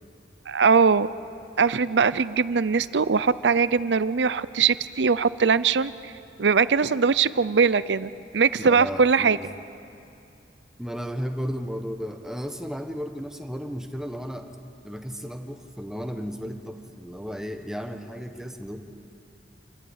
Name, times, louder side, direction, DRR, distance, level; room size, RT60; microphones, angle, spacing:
voice 1, 0.5-1.1 1.6-6.1 6.4-9.4, right 5 dB, 70° right, 16 dB, 0.6 m, -21 dB
voice 2, 8.7-9.5 10.8-14.5 14.8-18.8, equal, 5° right, 5 dB, 1.3 m, -34 dB
29.0 x 14.0 x 8.9 m, 2.6 s
head